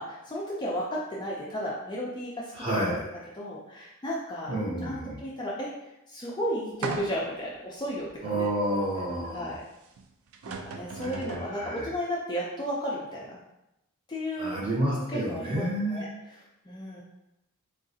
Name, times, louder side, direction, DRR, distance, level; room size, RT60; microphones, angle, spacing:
voice 1, 0.0-2.8 3.4-5.7 6.1-8.8 9.2-9.6 10.5-13.3 14.1-14.5 15.1-15.6 15.9-16.1 16.7-17.0, equal, 20° left, -5 dB, 0.3 m, -34 dB
voice 2, 2.5-3.3 4.5-5.2 8.2-9.5 10.9-11.9 14.4-16.0, right 1 dB, 25° right, -6 dB, 0.9 m, -30 dB
sound 1, 6.8-7.4 8.1-8.2 10.0-10.1 10.3-11.5, right 4 dB, 70° right, 0.3 m, -36 dB
3.7 x 2.3 x 2.6 m, 0.89 s
head